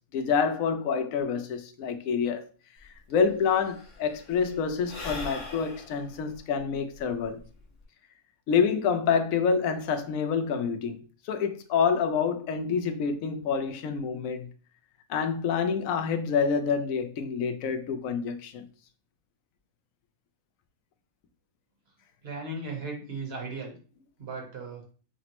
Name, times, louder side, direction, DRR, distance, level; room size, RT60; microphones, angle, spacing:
voice 1, 0.1-2.4 3.1-7.4 8.5-14.5 15.1-18.7, left 6 dB, 75° left, 1.0 m, -27 dB
Sigh / Breathing, 2.8-2.9 3.1-7.8, left 3 dB, 40° left, 0.8 m, -42 dB
voice 2, 22.2-23.7 24.2-24.8, right 3 dB, 50° right, 1.3 m, -36 dB
5.9 x 2.0 x 2.9 m
omnidirectional pair, 1.5 m